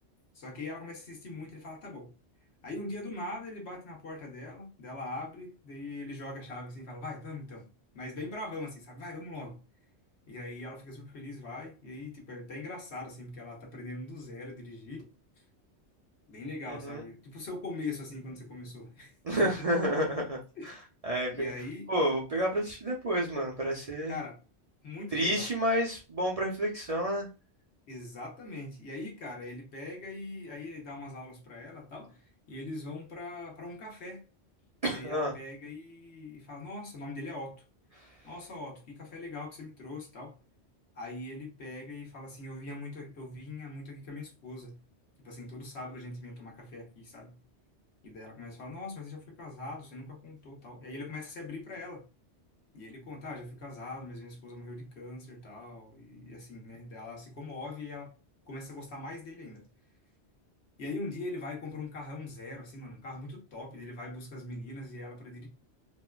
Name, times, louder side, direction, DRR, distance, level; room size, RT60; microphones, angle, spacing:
voice 1, 0.3-2.1 2.6-7.7 7.9-9.6 10.3-15.1 15.4-15.5 16.3-19.7 20.6-20.8 21.3-21.9 24.1-24.4 24.8-25.5 27.9-34.2 34.9-37.6 38.2-40.4 40.9-44.8 45.2-47.4 48.0-52.0 52.7-58.1 58.5-59.7 60.8-65.5, left 2 dB, 70° left, 1.2 m, -42 dB
voice 2, 16.7-17.0 19.2-20.4 21.0-21.5 21.9-24.2 25.1-27.3 34.8-35.3, equal, 45° right, 0.5 m, -29 dB
4.1 x 2.2 x 2.2 m
omnidirectional pair, 1.2 m